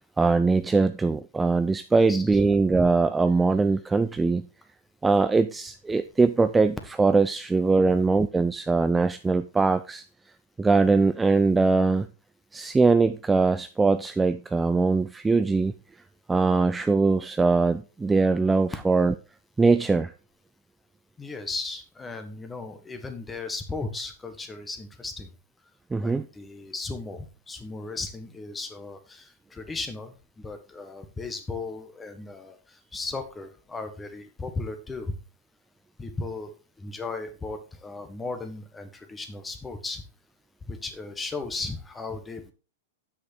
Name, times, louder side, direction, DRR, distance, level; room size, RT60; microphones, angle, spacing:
voice 1, 0.0-4.5 5.0-10.0 10.6-12.1 12.5-15.7 16.3-19.1 19.6-20.1 25.9-26.3, right 4 dB, 10° right, 0.4 m, -22 dB
voice 2, 2.0-2.5 21.2-25.3 26.0-35.1 36.0-40.0 40.7-42.5, left 3 dB, 10° left, 1.5 m, -36 dB
7.9 x 6.2 x 4.2 m
hypercardioid pair, 130°, 0 cm